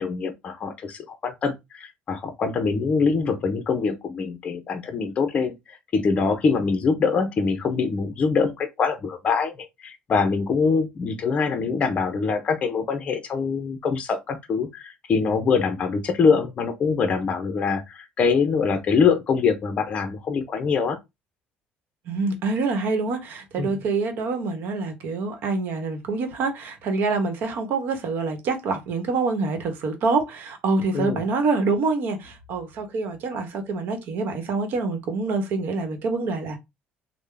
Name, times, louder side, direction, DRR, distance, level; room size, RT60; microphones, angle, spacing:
voice 1, 0.0-5.5 5.9-9.5 9.8-21.0 23.6-23.8 30.9-31.2, left 5 dB, 30° left, 0.6 m, -24 dB
voice 2, 22.1-36.6, right 3 dB, 60° right, 1.0 m, -26 dB
3.6 x 2.1 x 3.3 m
cardioid pair, 155°, 4 cm